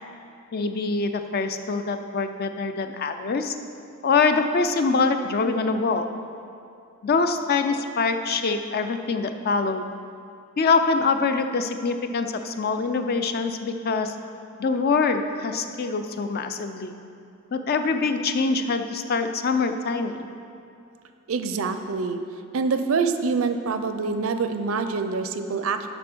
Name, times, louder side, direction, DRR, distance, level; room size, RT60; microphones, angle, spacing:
voice 1, 0.5-3.5 4.0-6.1 7.0-9.9 10.6-14.2 14.6-17.0 17.5-20.2, left 4 dB, 45° left, 8 dB, 0.4 m, -24 dB
voice 2, 21.3-22.2 22.5-25.9, right 4 dB, 70° right, 9 dB, 0.5 m, -25 dB
7.6 x 5.2 x 6.1 m, 2.5 s
head